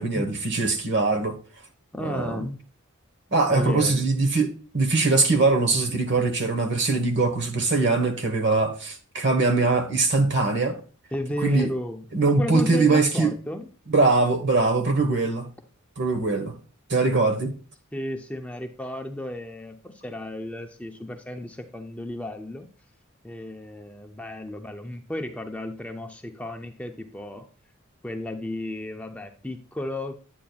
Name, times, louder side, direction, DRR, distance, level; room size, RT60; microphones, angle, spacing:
voice 1, 0.0-1.4 2.0-2.4 3.3-10.8 11.4-11.7 12.1-13.3 13.9-15.5 16.0-16.5 16.9-17.5, right 3 dB, 55° right, 1.3 m, -22 dB
voice 2, 1.9-2.6 3.5-4.1 11.1-13.7 17.9-22.7 23.2-27.5 28.0-30.2, left 1 dB, 5° left, 0.5 m, -33 dB
9.3 x 8.7 x 2.3 m
head